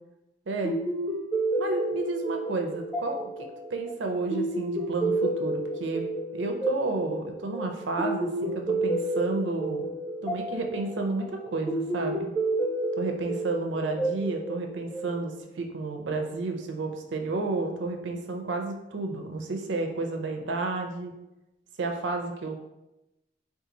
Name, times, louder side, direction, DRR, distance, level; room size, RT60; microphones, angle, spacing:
voice 1, 0.5-0.8 1.6-6.1 6.3-9.9 10.2-12.3 13.0-21.2 21.8-22.5, right 3 dB, 85° right, 3 dB, 0.5 m, -31 dB
sound 1, 0.6-15.4, right 1 dB, ahead, 0.5 m, -30 dB
2.7 x 2.4 x 3.8 m, 0.93 s
head